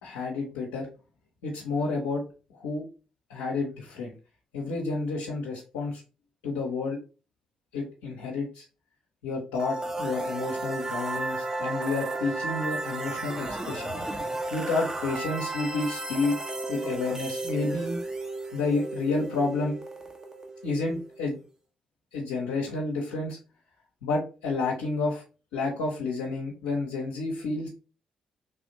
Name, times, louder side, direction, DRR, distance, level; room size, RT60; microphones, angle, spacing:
voice 1, 0.0-0.9 1.4-2.2 2.5-2.9 3.3-4.1 4.5-6.0 6.4-7.0 7.7-8.6 9.2-13.9 14.5-16.4 16.7-18.0 18.5-19.8 20.6-21.4 22.1-23.4 24.0-25.2 25.5-27.7, left 3 dB, 90° left, -5 dB, 0.7 m, -30 dB
sound 1, 9.6-21.4, right 2 dB, 25° right, 0.9 m, -34 dB
3.4 x 2.5 x 2.7 m, 0.33 s
hypercardioid pair, 45°, 2 cm